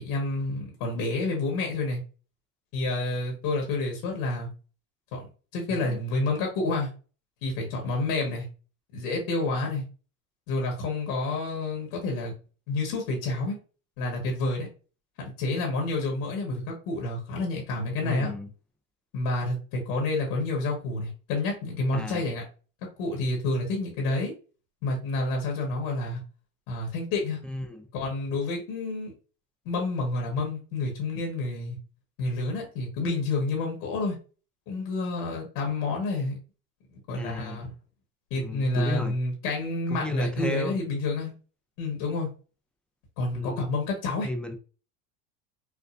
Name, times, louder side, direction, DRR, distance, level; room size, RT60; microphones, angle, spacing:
voice 1, 0.0-2.0 2.7-4.5 5.1-5.3 5.5-6.9 7.4-8.5 8.9-9.8 10.5-12.3 12.7-13.6 14.0-14.7 15.2-18.3 19.1-22.4 23.0-24.3 24.8-26.2 26.7-27.4 27.9-29.1 29.6-31.8 32.2-34.2 34.7-36.4 36.9-37.7 38.3-41.3 41.8-42.3 43.2-44.3, left 2 dB, 70° left, 1 dB, 1.6 m, -29 dB
voice 2, 18.0-18.5 21.9-22.2 27.4-27.9 37.2-37.6 38.4-39.1 39.9-40.8 43.3-43.7 44.2-44.6, left 1 dB, 5° left, 5 dB, 0.4 m, -33 dB
5.2 x 2.2 x 2.5 m, 0.36 s
supercardioid pair, 115°, 41 cm